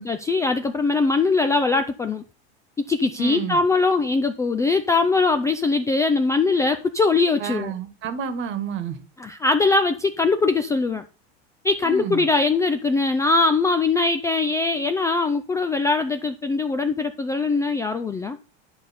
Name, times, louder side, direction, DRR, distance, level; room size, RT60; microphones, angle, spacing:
voice 1, 0.0-2.2 2.8-7.7 9.2-11.0 11.6-18.4, left 3 dB, 10° left, 0.3 m, -21 dB
voice 2, 3.2-3.6 7.4-9.0 11.8-12.2, right 7 dB, 40° right, 1.3 m, -30 dB
10.5 x 5.0 x 4.2 m
supercardioid pair, 120°, 32 cm